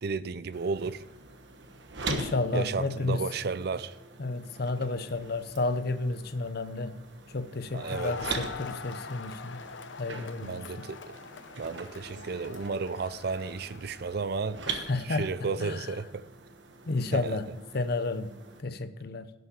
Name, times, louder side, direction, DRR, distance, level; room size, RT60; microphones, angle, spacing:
voice 1, 0.0-1.0 2.5-4.0 7.7-8.3 10.4-11.2 11.6-14.6 15.0-16.2 17.1-17.4, right 4 dB, 60° right, 0.5 m, -33 dB
sound 1, 0.5-18.6, right 4 dB, 75° right, 1.2 m, -43 dB
voice 2, 2.1-3.2 4.2-7.0 7.3-9.6 10.0-10.9 14.7-15.3 15.6-15.9 16.9-19.3, left 3 dB, 60° left, 0.7 m, -31 dB
Crowd, 7.7-14.3, left 5 dB, 90° left, 0.7 m, -44 dB
11.5 x 6.2 x 6.8 m
head